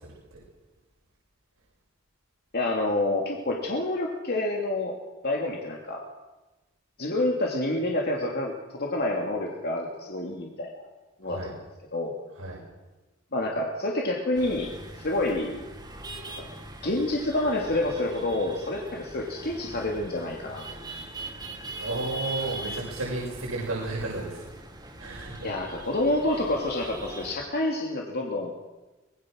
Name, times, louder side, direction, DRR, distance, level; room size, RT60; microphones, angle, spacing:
voice 1, 2.5-4.9 5.2-6.0 7.0-10.8 11.2-11.5 11.9-12.1 13.3-14.7 15.0-15.6 16.4-16.5 16.8-20.8 22.4-22.5 25.4-28.5, left 2 dB, 50° left, -1 dB, 2.8 m, -28 dB
sound 1, 14.3-27.4, right 2 dB, 20° right, 3.3 m, -41 dB
voice 2, 21.8-24.4 25.0-25.5, right 2 dB, 80° right, -4 dB, 6.4 m, -32 dB
25.0 x 20.5 x 6.5 m, 1.1 s
head